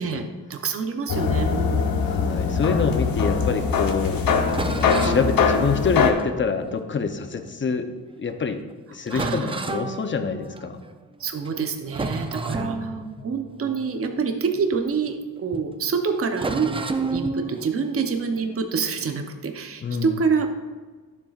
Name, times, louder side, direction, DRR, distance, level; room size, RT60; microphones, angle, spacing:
voice 1, 0.0-2.0 9.1-9.6 11.2-13.0 13.2-20.5, right 5 dB, 40° right, 5 dB, 0.7 m, -27 dB
sound 1, 1.1-6.1, left 5 dB, 80° left, 1.0 m, -22 dB
voice 2, 2.1-4.2 4.8-7.9 8.2-8.6 8.9-10.8 12.5-13.1 19.8-20.1, left 5 dB, 35° left, 8 dB, 0.6 m, -26 dB
sound 2, 2.8-7.7 8.3-8.4 8.7-8.8 9.1-11.0 11.4-11.6 11.9-15.3 15.5-15.7 16.3-19.4, right 3 dB, 15° right, 0.4 m, -33 dB
12.5 x 7.3 x 2.4 m, 1.4 s
wide cardioid pair, 135°, 35 cm